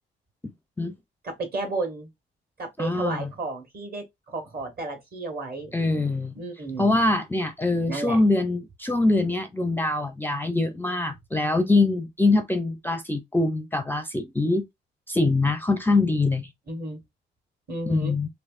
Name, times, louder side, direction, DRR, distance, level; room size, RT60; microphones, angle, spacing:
voice 1, 1.2-2.1 2.6-5.7 6.3-7.0 7.9-8.2 16.7-17.0 17.7-18.1, right 2 dB, 50° right, 1.7 m, -32 dB
voice 2, 2.8-3.3 5.7-6.3 6.8-14.7 15.1-16.5 17.9-18.3, left 2 dB, 10° left, 0.5 m, -23 dB
3.3 x 3.0 x 2.4 m
cardioid pair, 90°, 20 cm